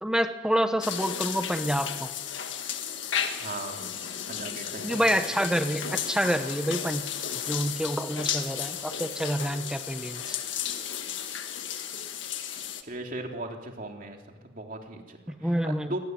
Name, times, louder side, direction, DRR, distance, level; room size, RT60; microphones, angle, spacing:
voice 1, 0.0-2.1 4.8-7.0 7.5-10.3 15.4-15.9, equal, 5° right, 8 dB, 1.0 m, -27 dB
sound 1, 0.8-12.8, left 8 dB, 65° left, 1.7 m, -34 dB
voice 2, 3.4-3.9 4.3-5.0 12.9-14.2 14.4-16.0, right 2 dB, 40° right, 2 dB, 3.1 m, -38 dB
23.0 x 18.5 x 9.5 m, 1.4 s
head